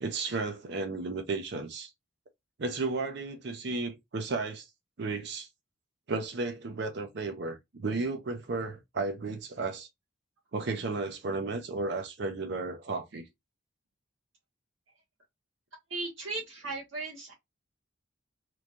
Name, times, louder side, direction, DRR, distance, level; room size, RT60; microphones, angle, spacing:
voice 1, 0.0-1.9 2.6-4.7 5.0-5.5 6.1-9.9 10.5-13.3, right 3 dB, 55° right, 0.5 m, -33 dB
voice 2, 15.9-17.3, right 3 dB, 70° right, 1.1 m, -36 dB
3.1 x 2.2 x 2.4 m
head